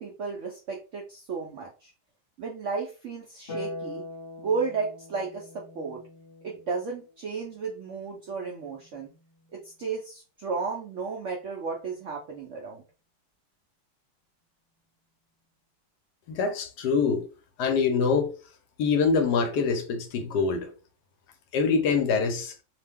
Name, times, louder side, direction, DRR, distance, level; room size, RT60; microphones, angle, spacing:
voice 1, 0.0-1.9 2.4-4.0 4.4-5.5 5.7-6.0 6.4-9.1 9.5-12.8, right 4 dB, 70° right, 0.7 m, -33 dB
Harp, 3.5-10.0 11.6-12.6, left 2 dB, 35° left, 1.2 m, -44 dB
voice 2, 16.3-17.3 17.6-18.3 18.8-20.7 21.5-22.5, left 5 dB, 70° left, 1.1 m, -24 dB
2.9 x 2.1 x 3.4 m
omnidirectional pair, 1.9 m